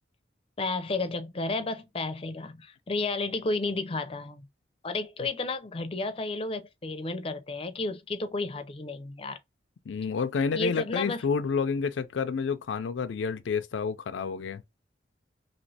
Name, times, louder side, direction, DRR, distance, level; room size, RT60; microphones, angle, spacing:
voice 1, 0.6-4.5 4.8-9.4 10.5-11.2, left 3 dB, 30° left, 0.5 m, -32 dB
voice 2, 9.9-14.6, left 5 dB, 85° left, 0.4 m, -29 dB
3.1 x 2.9 x 2.7 m
head